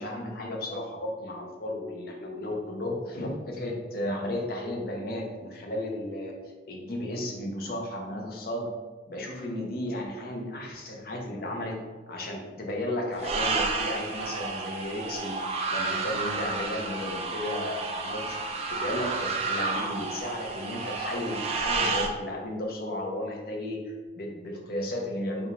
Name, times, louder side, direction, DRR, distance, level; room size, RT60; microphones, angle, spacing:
voice 1, 0.0-6.3 6.7-8.7 9.1-11.8 12.1-15.4 15.7-18.5 18.8-25.5, left 1 dB, 55° left, 0 dB, 0.7 m, -34 dB
sound 1, 13.2-22.1, right 3 dB, 35° right, 0.4 m, -31 dB
3.5 x 2.4 x 4.2 m, 1.3 s
head